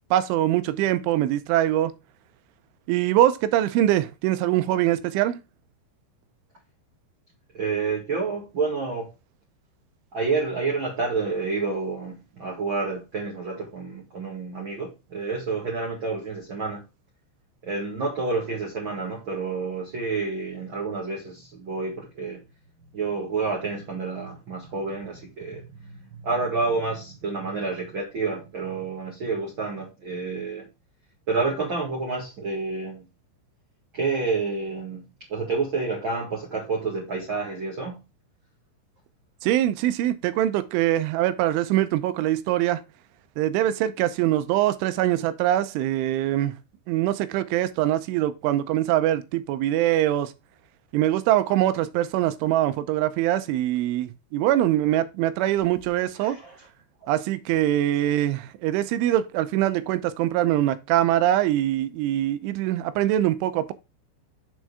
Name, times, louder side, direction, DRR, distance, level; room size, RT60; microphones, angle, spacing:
voice 1, 0.1-1.9 2.9-5.4 39.4-42.8 43.4-46.6 46.9-50.3 50.9-56.4 57.1-63.7, right 13 dB, 85° right, 3.2 m, -23 dB
voice 2, 7.5-9.1 10.1-16.8 17.6-22.4 22.9-30.7 31.3-33.1 33.9-38.0 56.2-56.5, right 4 dB, 55° right, 1.4 m, -29 dB
7.4 x 6.4 x 3.5 m
omnidirectional pair, 5.4 m